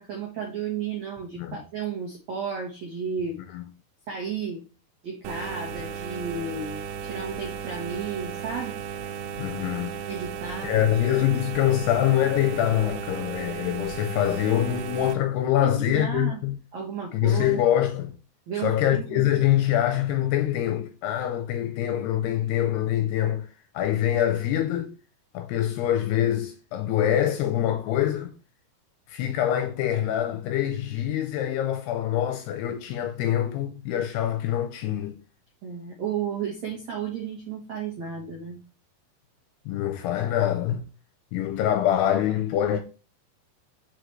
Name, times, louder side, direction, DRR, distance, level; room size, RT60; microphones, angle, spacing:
voice 1, 0.0-3.4 4.1-4.6 5.0-8.7 10.1-10.7 15.6-16.4 16.7-17.7 18.5-19.2 35.6-38.6, right 6 dB, 75° right, 1.6 m, -33 dB
sound 1, 5.2-15.1, right 8 dB, 90° right, 3.1 m, -35 dB
voice 2, 9.4-9.9 10.6-16.6 17.1-18.1 18.6-23.5 23.7-24.9 25.3-28.3 29.1-35.2 39.7-40.8 41.3-42.8, left 11 dB, 80° left, 2.5 m, -24 dB
6.3 x 4.9 x 3.1 m
omnidirectional pair, 5.3 m